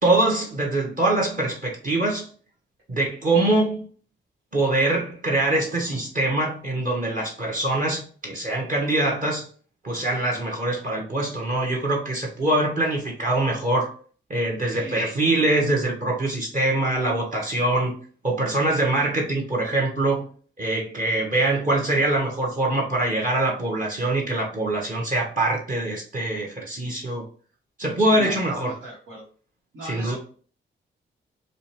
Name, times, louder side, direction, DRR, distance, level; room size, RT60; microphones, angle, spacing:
voice 1, 0.0-2.3 2.9-3.8 4.5-9.5 9.8-13.9 14.3-17.9 18.2-20.2 20.6-27.3 27.8-28.7 29.8-30.2, right 2 dB, 40° right, -2 dB, 1.2 m, -23 dB
voice 2, 14.7-15.0 28.0-29.2 29.7-30.2, right 1 dB, 85° right, -4 dB, 1.2 m, -38 dB
5.1 x 2.2 x 3.0 m, 0.43 s
cardioid pair, 70°, 20 cm